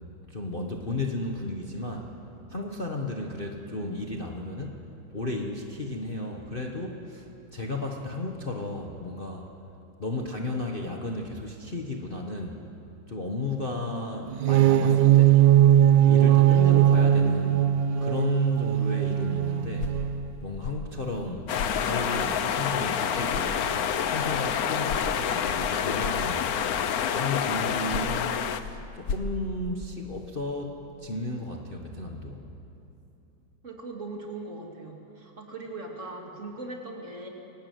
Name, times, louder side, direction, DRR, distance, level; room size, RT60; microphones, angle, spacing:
voice 1, 0.3-2.1 2.5-4.8 5.1-9.5 10.0-12.6 13.1-15.5 16.1-17.7 18.0-19.9 20.4-21.5 21.8-23.6 24.1-32.5, left 2 dB, 30° left, 1 dB, 1.4 m, -33 dB
sound 1, 14.3-20.3, right 11 dB, 70° right, 1.4 m, -20 dB
sound 2, 19.6-23.0 23.3-26.8 27.6-30.3, left 3 dB, 75° left, 2.0 m, -38 dB
sound 3, 21.5-28.6, left 8 dB, 60° left, 1.1 m, -28 dB
voice 2, 33.6-37.3, right 2 dB, 35° right, 0 dB, 3.0 m, -39 dB
24.0 x 18.0 x 9.5 m, 2.8 s
omnidirectional pair, 2.2 m